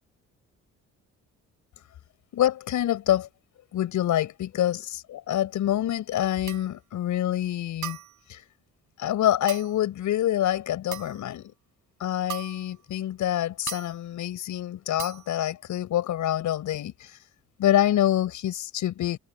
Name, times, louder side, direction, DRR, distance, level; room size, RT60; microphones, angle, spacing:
voice 1, 2.3-3.3 3.7-4.8 5.1-8.0 8.3-8.4 9.0-11.5 12.0-17.2 17.6-19.2, left 12 dB, 75° left, 7.4 m, -26 dB
sound 1, 6.5-6.8 7.8-8.2 9.5-9.8 10.9-11.3 12.3-12.7 13.7-14.0 15.0-15.3, right 11 dB, 75° right, 7.7 m, -38 dB
cardioid pair, 90°, 30 cm